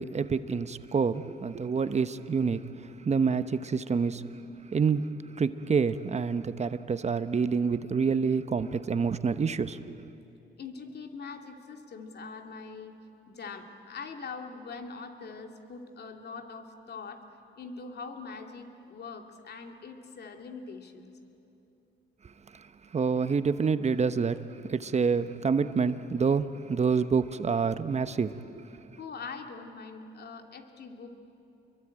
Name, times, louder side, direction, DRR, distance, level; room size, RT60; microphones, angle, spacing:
voice 1, 0.0-2.6 3.0-4.2 4.7-5.0 5.4-10.0 22.9-24.4 24.7-28.3, right 5 dB, 35° right, 1.0 m, -27 dB
voice 2, 10.6-13.0 13.3-17.2 17.6-21.1 29.0-31.1, left 4 dB, 55° left, 2.5 m, -42 dB
28.5 x 22.5 x 9.0 m
cardioid pair, 90°, 20 cm